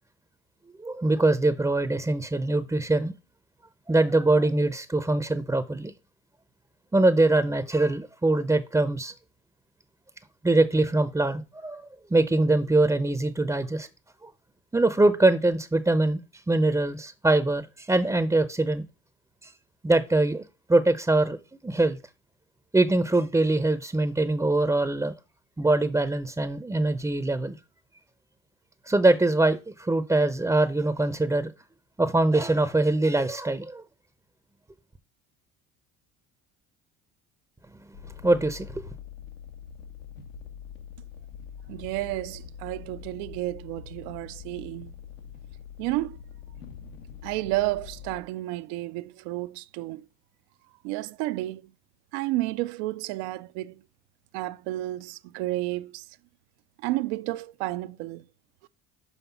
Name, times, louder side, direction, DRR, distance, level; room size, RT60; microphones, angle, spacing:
voice 1, 0.8-3.1 3.9-5.9 6.9-9.1 10.4-11.8 12.1-13.9 14.2-14.3 14.7-16.2 16.5-18.8 19.4-19.5 19.8-20.4 20.7-21.4 21.6-22.0 22.7-25.1 25.6-27.6 28.9-31.5 32.0-33.8 38.2-38.9, right 2 dB, 10° right, 0.6 m, -23 dB
sound 1, 37.9-48.2, left 7 dB, 90° left, 1.2 m, -44 dB
voice 2, 41.7-44.9 45.8-46.2 47.2-50.1 50.8-51.6 52.1-53.8 54.3-56.1 56.8-58.3 58.6-58.7, right 18 dB, 75° right, 0.6 m, -31 dB
5.7 x 5.3 x 5.7 m
hypercardioid pair, 75°, 39 cm